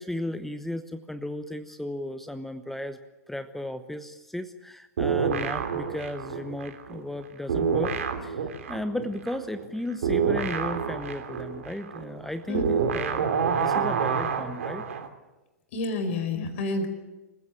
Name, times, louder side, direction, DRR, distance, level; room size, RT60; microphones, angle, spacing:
voice 1, 0.0-3.0 3.3-7.9 8.2-13.3 13.5-14.9, left 1 dB, ahead, 11 dB, 0.9 m, -35 dB
sound 1, 5.0-7.2 7.5-15.1, right 6 dB, 60° right, 3.1 m, -28 dB
voice 2, 12.5-12.8 15.7-16.9, left 3 dB, 50° left, 7 dB, 5.0 m, -29 dB
26.5 x 16.0 x 9.0 m, 1.1 s
figure-of-eight pair, 105°, 9 cm